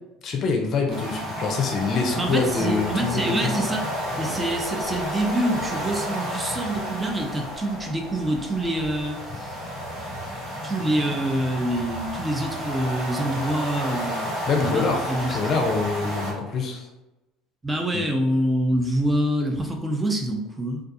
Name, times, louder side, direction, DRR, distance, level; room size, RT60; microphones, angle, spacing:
voice 1, 0.2-3.5 14.5-16.9 17.9-18.1, left 4 dB, 50° left, 2 dB, 0.5 m, -25 dB
sound 1, 0.9-16.3, equal, 60° right, 1.3 m, -31 dB
voice 2, 2.2-3.8 4.2-9.6 10.6-15.4 17.6-20.8, right 1 dB, 15° right, 2 dB, 0.5 m, -26 dB
2.3 x 2.3 x 2.5 m, 0.99 s
hypercardioid pair, 70°, 0 cm